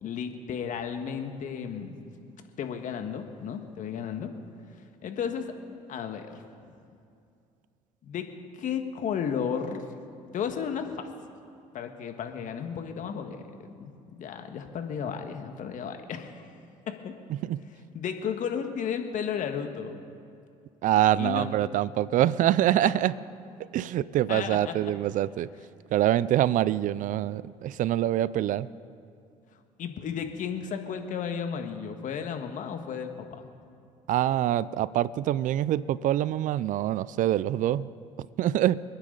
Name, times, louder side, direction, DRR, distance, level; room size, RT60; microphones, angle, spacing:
voice 1, 0.0-2.0 2.6-4.3 5.0-5.5 5.9-6.4 8.0-8.3 8.5-9.8 10.3-11.1 11.7-16.5 16.9-17.2 17.9-20.0 21.2-21.5 24.3-24.8 29.8-33.5, left 7 dB, 60° left, 6 dB, 1.6 m, -33 dB
voice 2, 20.8-23.1 23.7-25.5 25.9-28.7 34.1-37.9 38.4-38.8, right 12 dB, 60° right, 19 dB, 0.5 m, -25 dB
29.0 x 9.8 x 4.0 m, 2.4 s
supercardioid pair, 70°, 15 cm